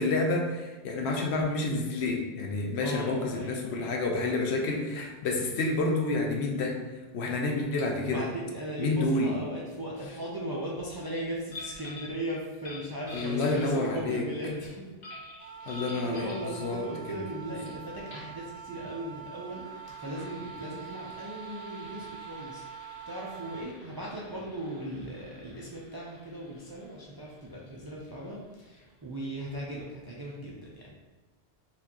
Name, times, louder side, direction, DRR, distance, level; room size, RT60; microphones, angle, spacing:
voice 1, 0.0-6.7 7.1-8.3 8.8-9.3 13.1-14.2 15.7-16.3 16.6-16.9, left 2 dB, 80° left, 1 dB, 0.9 m, -29 dB
voice 2, 2.8-4.3 8.0-14.9 15.6-19.6 20.0-30.9, right 1 dB, 40° right, -5 dB, 0.3 m, -38 dB
sound 1, 11.5-12.2 12.5-14.1 15.0-16.5 17.6-17.7 18.0-18.3 19.4-28.7, left 2 dB, 45° left, 1.1 m, -49 dB
sound 2, 15.4-23.6, right 7 dB, 65° left, 1.2 m, -45 dB
4.3 x 2.5 x 2.8 m, 1.2 s
omnidirectional pair, 1.1 m